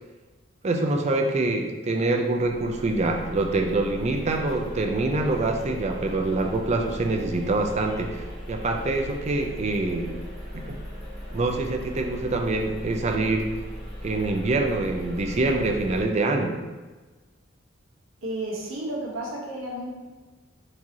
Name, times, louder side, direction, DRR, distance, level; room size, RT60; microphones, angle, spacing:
voice 1, 0.6-10.1 10.5-10.8 11.3-13.5 14.0-16.6, right 2 dB, 35° right, 3 dB, 0.4 m, -25 dB
sound 1, 2.3-16.0, equal, 25° left, 0.9 m, -38 dB
voice 2, 18.2-19.9, right 1 dB, 80° right, -2 dB, 1.0 m, -32 dB
4.6 x 2.8 x 2.8 m, 1.3 s
head